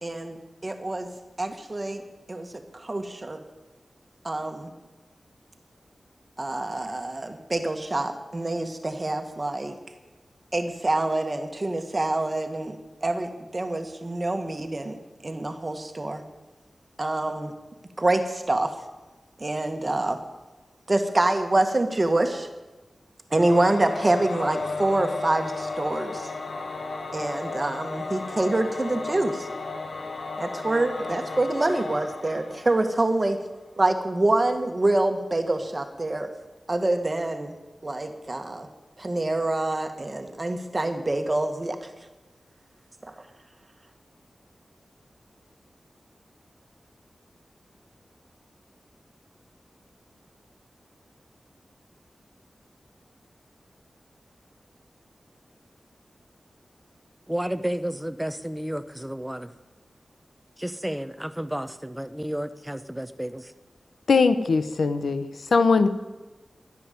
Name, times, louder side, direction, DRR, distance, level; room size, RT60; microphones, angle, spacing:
voice 1, 0.0-0.4 0.6-1.1 1.4-2.0 2.3-3.4 4.2-4.7 6.4-9.8 10.5-15.0 15.2-16.2 17.0-17.5 18.0-18.7 19.4-20.2 20.9-22.5 23.3-26.3 27.1-29.5 30.4-33.4 33.8-36.3 36.7-37.6 37.8-38.7 39.0-41.9 43.1-43.2, right 2 dB, 30° right, 6 dB, 1.7 m, -26 dB
Singing / Musical instrument, 23.3-33.3, left 3 dB, 65° left, 1.4 m, -34 dB
voice 2, 57.3-59.5 60.6-63.5, equal, 5° right, 11 dB, 0.8 m, -31 dB
voice 3, 64.1-65.3 65.5-65.9, left 4 dB, 85° left, 11 dB, 1.0 m, -20 dB
12.0 x 10.5 x 9.4 m, 1.2 s
wide cardioid pair, 90°, 0 cm